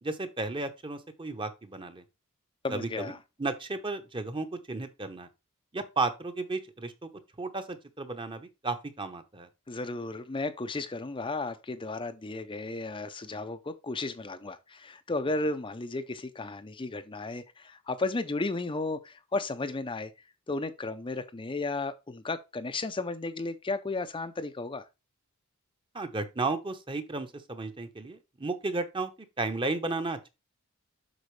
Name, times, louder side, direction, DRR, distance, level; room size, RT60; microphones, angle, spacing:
voice 1, 0.0-2.0 2.7-3.1 3.4-5.3 5.7-7.1 7.4-9.5 25.9-29.1 29.4-30.3, right 3 dB, 25° right, 0.9 m, -33 dB
voice 2, 2.6-3.2 9.7-20.1 20.5-24.8, left 3 dB, 25° left, 0.5 m, -34 dB
8.0 x 6.0 x 3.2 m
head